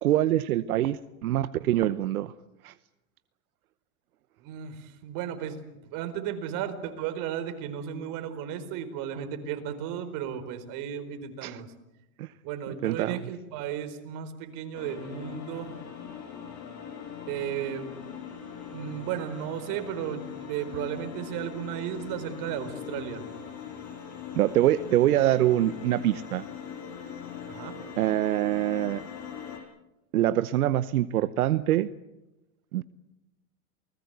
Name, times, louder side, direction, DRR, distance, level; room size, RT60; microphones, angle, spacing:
voice 1, 0.0-2.3 2.6-2.7 11.4-11.6 12.2-12.3 12.8-13.2 24.4-26.4 28.0-29.0 30.1-31.9 32.7-32.8, right 13 dB, 85° right, 14 dB, 0.9 m, -24 dB
voice 2, 4.4-11.7 12.4-15.8 17.2-17.9 18.7-23.2 27.5-27.8, right 9 dB, 50° right, 9 dB, 4.5 m, -34 dB
sound 1, 14.7-29.6, left 8 dB, 40° left, 6.7 m, -41 dB
28.5 x 20.0 x 8.1 m, 0.98 s
hypercardioid pair, 120°, 43 cm